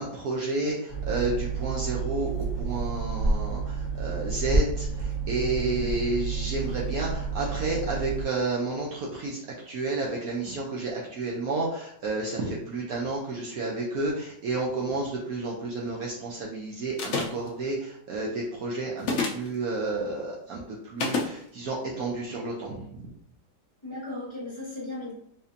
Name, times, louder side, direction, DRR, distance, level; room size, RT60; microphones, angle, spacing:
voice 1, 0.0-9.4 9.7-23.1, right 2 dB, 65° right, -3 dB, 1.0 m, -31 dB
sound 1, 0.9-8.2, right 4 dB, 35° right, 0.8 m, -29 dB
voice 2, 5.6-6.0 23.8-25.1, left 2 dB, 15° left, -8 dB, 1.3 m, -37 dB
sound 2, 17.0-17.5 19.0-19.5 21.0-21.3, left 4 dB, 65° left, 0.7 m, -27 dB
4.1 x 2.7 x 2.5 m, 0.68 s
omnidirectional pair, 1.8 m